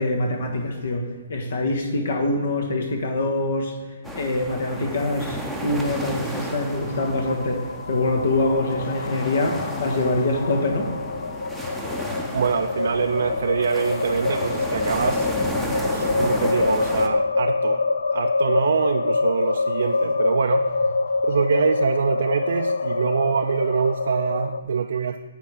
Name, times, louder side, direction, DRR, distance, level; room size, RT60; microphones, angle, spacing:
voice 1, 0.0-3.7 4.1-10.9, left 2 dB, 65° left, 4 dB, 1.4 m, -24 dB
sound 1, 4.0-17.1, right 1 dB, ahead, 0.7 m, -33 dB
sound 2, 6.8-24.6, left 3 dB, 85° left, 0.4 m, -25 dB
voice 2, 12.3-15.3 15.9-17.9 18.1-20.7 21.3-25.2, right 6 dB, 70° right, 6 dB, 0.3 m, -24 dB
9.2 x 3.6 x 6.3 m, 1.4 s
hypercardioid pair, 150°, 0 cm